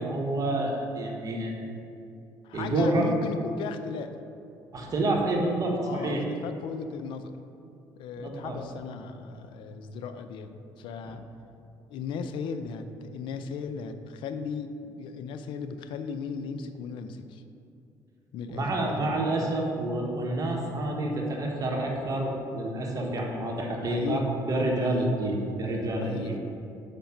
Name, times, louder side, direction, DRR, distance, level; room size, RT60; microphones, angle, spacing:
voice 1, 0.0-1.6 2.5-3.1 4.7-6.2 8.2-8.6 11.0-11.1 18.5-24.2 24.5-26.3, right 1 dB, 45° right, 0 dB, 1.3 m, -28 dB
voice 2, 2.4-4.2 5.8-7.3 8.0-11.2 11.9-17.4 18.3-19.1 23.8-24.3 24.8-25.1 26.0-26.4, left 6 dB, 75° left, 9 dB, 0.5 m, -37 dB
5.2 x 5.1 x 5.9 m, 2.6 s
cardioid pair, 90°, 9 cm